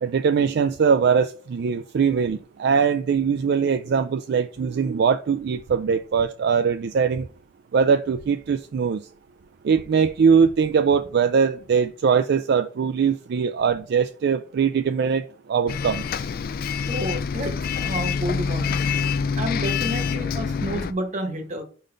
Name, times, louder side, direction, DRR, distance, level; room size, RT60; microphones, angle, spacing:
voice 1, 0.0-7.3 7.7-9.0 9.6-16.0, right 6 dB, 60° right, 0.3 m, -21 dB
Bus, 15.7-20.9, left 6 dB, 50° left, 0.4 m, -26 dB
voice 2, 16.9-18.8 19.4-21.6, equal, 40° right, 1.2 m, -30 dB
5.2 x 3.8 x 5.0 m
head